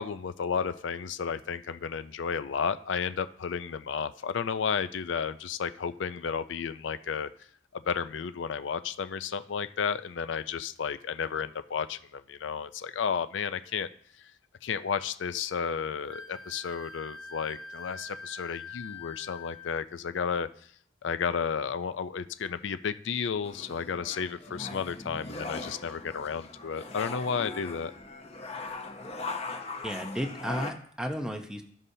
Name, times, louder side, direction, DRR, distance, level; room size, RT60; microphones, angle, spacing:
voice 1, 0.0-7.3 7.7-13.9 14.2-14.3 14.6-20.5 21.0-27.9, left 6 dB, 75° left, 12 dB, 0.4 m, -32 dB
Wind instrument woodwind instrument, 16.1-19.8, left 4 dB, 55° right, 0.8 m, -44 dB
sound 1, 23.4-30.7, left 3 dB, 35° left, 0.7 m, -40 dB
voice 2, 29.8-31.6, equal, 5° right, 3 dB, 0.8 m, -33 dB
14.5 x 5.4 x 2.7 m, 0.62 s
head